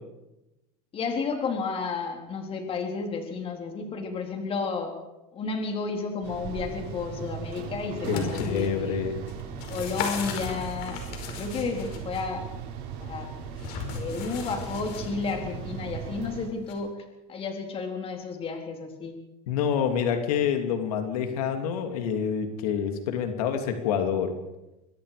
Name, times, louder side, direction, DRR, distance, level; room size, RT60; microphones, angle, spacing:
voice 1, 0.9-4.9 5.3-9.0 9.7-12.4 13.0-13.3 13.7-16.9 17.3-19.2, left 4 dB, 30° left, 3 dB, 4.1 m, -32 dB
sound 1, 6.2-16.5, right 6 dB, 55° right, 5.0 m, -38 dB
sound 2, 7.8-8.7 9.3-12.2 13.6-15.3 16.7-16.8, left 6 dB, 60° left, 5.4 m, -37 dB
voice 2, 8.1-9.2 19.5-24.3, left 7 dB, 90° left, 6 dB, 2.9 m, -27 dB
24.5 x 20.5 x 5.1 m, 0.96 s
supercardioid pair, 140°, 19 cm